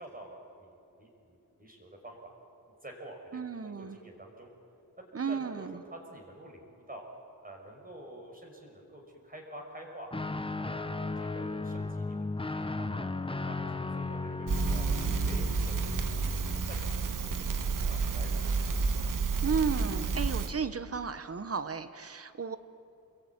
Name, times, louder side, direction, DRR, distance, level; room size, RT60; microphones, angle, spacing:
voice 1, 0.0-2.3 2.8-4.5 5.0-7.0 7.4-10.1 10.6-12.2 12.5-13.1 13.4-14.9 15.2-16.4 16.7-17.5 17.9-18.7, right 1 dB, 25° right, 0 dB, 5.6 m, -48 dB
voice 2, 3.3-4.0 5.1-5.8 19.4-22.6, right 5 dB, 40° right, 11 dB, 1.2 m, -33 dB
Guitar, 10.1-17.8, left 3 dB, 15° left, 0.9 m, -36 dB
Crackle, 14.5-20.5, right 4 dB, 65° right, 1.8 m, -30 dB
27.5 x 21.5 x 9.8 m, 2.7 s
wide cardioid pair, 115°, 34 cm